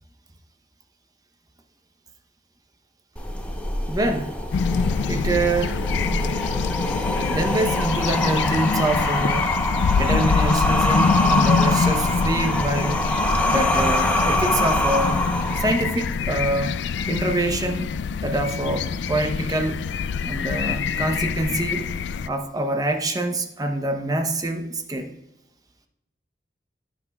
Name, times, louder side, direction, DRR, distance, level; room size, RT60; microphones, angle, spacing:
sound 1, 3.2-16.1, left 1 dB, 10° left, 0.8 m, -24 dB
voice 1, 3.9-4.3 5.1-5.8 7.3-9.6 10.0-13.0 13.4-15.2 15.6-16.7 17.1-17.9 18.2-19.9 20.3-21.9 22.2-25.1, right 2 dB, 20° right, 5 dB, 0.7 m, -25 dB
sound 2, 4.5-22.3, left 5 dB, 80° left, 0.3 m, -25 dB
15.5 x 5.9 x 2.3 m, 0.87 s
head